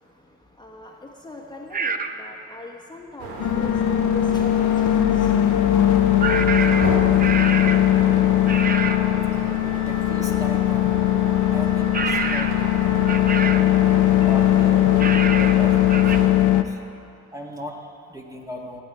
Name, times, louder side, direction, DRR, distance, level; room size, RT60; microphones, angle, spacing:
voice 1, 0.6-4.9, left 2 dB, 15° left, 0 dB, 1.3 m, -41 dB
Fox Screams, 1.7-2.2 6.2-7.9 8.5-9.1 11.9-12.6 13.1-13.7 15.0-15.6 15.9-16.2, right 5 dB, 30° right, 0.8 m, -27 dB
sound 1, 3.2-16.3, right 3 dB, 90° right, 2.1 m, -33 dB
sound 2, 3.4-16.6, left 13 dB, 70° left, 0.6 m, -19 dB
voice 2, 8.5-8.9 9.9-10.9 11.4-12.6 13.2-13.7 14.3-16.8 17.3-18.8, equal, 10° right, 1 dB, 1.6 m, -38 dB
13.5 x 8.0 x 9.1 m, 2.7 s
cardioid pair, 90°, 30 cm